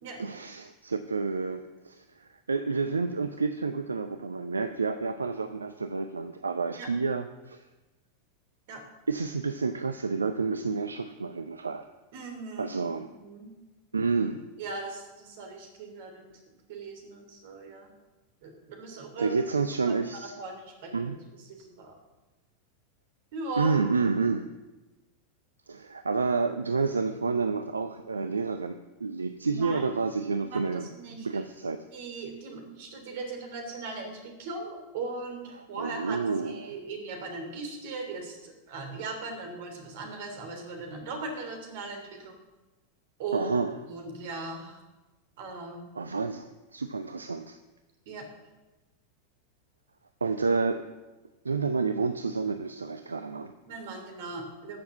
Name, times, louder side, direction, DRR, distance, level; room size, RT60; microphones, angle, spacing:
voice 1, 0.2-7.6 9.1-11.9 12.6-13.1 13.9-14.4 19.2-20.3 20.9-21.2 23.6-24.5 25.7-31.8 35.8-36.7 43.3-43.7 46.0-47.6 50.2-50.8 51.4-53.5, right 4 dB, 75° right, 10 dB, 0.6 m, -29 dB
voice 2, 12.1-12.8 13.1-13.5 14.6-16.3 16.7-17.9 18.4-19.3 19.8-21.1 21.5-22.0 23.3-23.7 29.5-30.0 30.4-31.4 31.9-36.2 36.4-42.3 43.2-43.5 43.9-44.8 45.4-45.9 48.1-48.2 53.7-54.8, right 3 dB, 55° right, 3 dB, 3.2 m, -39 dB
13.5 x 7.1 x 7.4 m, 1.1 s
figure-of-eight pair, 90°, 0 cm